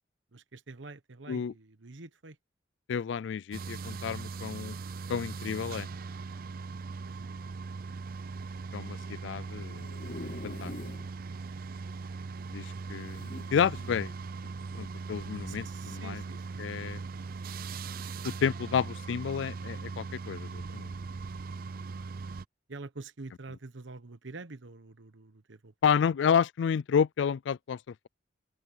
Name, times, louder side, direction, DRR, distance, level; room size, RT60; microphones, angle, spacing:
voice 1, 0.3-2.4 5.1-5.4 7.0-7.5 10.9-11.4 15.5-17.3 21.8-22.3 22.7-25.7, right 3 dB, 85° right, 1.1 m, -47 dB
voice 2, 2.9-4.8 5.1-5.9 8.7-10.1 10.4-10.7 12.5-14.1 14.7-16.2 16.6-17.0 18.2-20.9 25.8-28.1, left 7 dB, 75° left, 0.3 m, -30 dB
sound 1, 3.5-22.5, right 4 dB, 50° right, 0.5 m, -40 dB
sound 2, 9.6-11.1 11.6-11.7 11.9-12.0 13.1-14.0 14.7-14.9, left 2 dB, 45° left, 0.9 m, -44 dB
open air
head